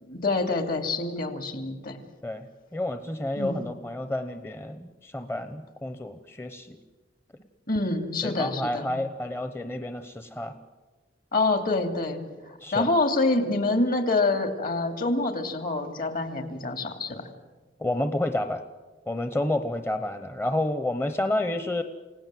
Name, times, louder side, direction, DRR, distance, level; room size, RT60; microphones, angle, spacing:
voice 1, 0.0-2.0 3.4-3.6 7.7-8.9 11.3-12.2 12.7-17.3, left 2 dB, 55° left, 7 dB, 2.7 m, -26 dB
voice 2, 2.2-6.8 8.2-10.6 12.6-12.9 17.8-18.6 19.1-21.8, left 1 dB, 15° left, 9 dB, 0.9 m, -30 dB
29.0 x 17.5 x 7.7 m, 1.3 s
head